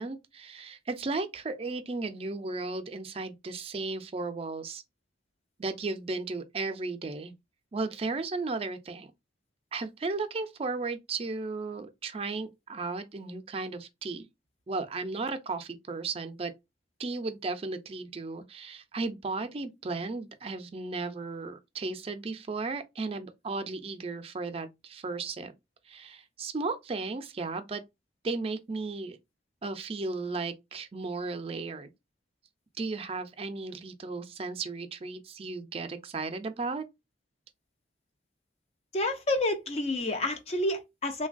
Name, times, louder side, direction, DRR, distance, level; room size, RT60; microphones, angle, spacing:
voice 1, 0.0-4.8 5.6-7.3 7.7-9.1 9.7-14.3 14.7-16.5 17.0-25.5 25.9-27.8 28.2-29.2 29.6-31.9 32.8-36.9, right 3 dB, 30° right, 0.4 m, -35 dB
voice 2, 38.9-41.3, left 2 dB, 35° left, 0.4 m, -29 dB
3.2 x 2.2 x 2.4 m
head